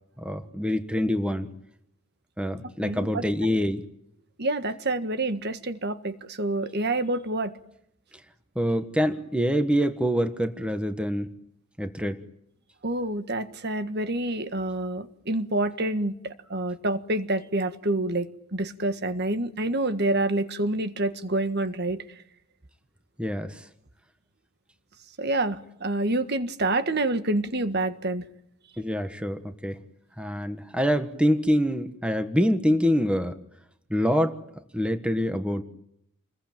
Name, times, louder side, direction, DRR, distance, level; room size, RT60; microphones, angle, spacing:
voice 1, 0.2-1.5 2.4-3.8 8.5-11.3 11.8-12.2 23.2-23.6 28.8-29.8 30.2-33.4 33.9-34.3 34.7-35.6, equal, 5° right, 8 dB, 1.4 m, -25 dB
voice 2, 2.8-3.2 4.4-7.5 12.8-16.1 16.5-18.3 18.5-22.0 25.2-28.2, right 2 dB, 45° right, 10 dB, 1.6 m, -27 dB
29.0 x 21.5 x 9.0 m, 0.76 s
head